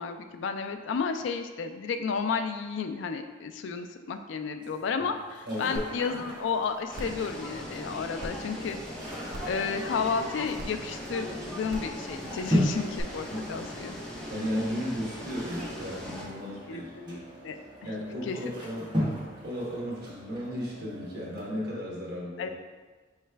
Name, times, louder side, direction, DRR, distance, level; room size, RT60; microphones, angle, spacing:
voice 1, 0.0-8.8 9.5-14.0 16.7-17.6 17.8-17.9 18.2-18.5 22.4-22.5, left 5 dB, 75° left, 7 dB, 0.3 m, -32 dB
sound 1, 4.6-21.4, equal, 25° right, 1.1 m, -37 dB
voice 2, 5.5-5.8 13.3-13.5 14.3-17.2 17.8-19.0 19.4-22.5, equal, 55° right, -4 dB, 1.1 m, -35 dB
sound 2, 5.8-5.9 6.3-6.4 6.9-7.2 8.2-8.3 9.3-9.6 10.6-10.7 11.7-11.9 13.0-13.1, equal, 70° right, 0.8 m, -38 dB
sound 3, 6.9-16.3, equal, 5° left, 0.6 m, -39 dB
4.7 x 3.2 x 3.3 m, 1.3 s
head